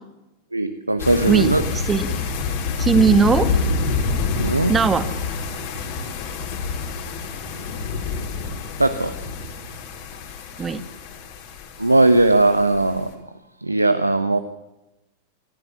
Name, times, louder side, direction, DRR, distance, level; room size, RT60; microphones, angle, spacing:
voice 1, 0.5-1.6 4.3-4.7 8.8-9.1 11.8-13.2 13.6-14.4, right 2 dB, 85° right, 10 dB, 1.1 m, -18 dB
sound 1, 1.0-12.9, left 4 dB, 50° left, 4.8 m, -27 dB
voice 2, 1.3-2.1 2.8-3.5 4.7-5.1 10.6-10.8, right 5 dB, 20° right, 11 dB, 1.7 m, -19 dB
27.0 x 14.5 x 7.1 m, 0.96 s
figure-of-eight pair, 90°, 0 cm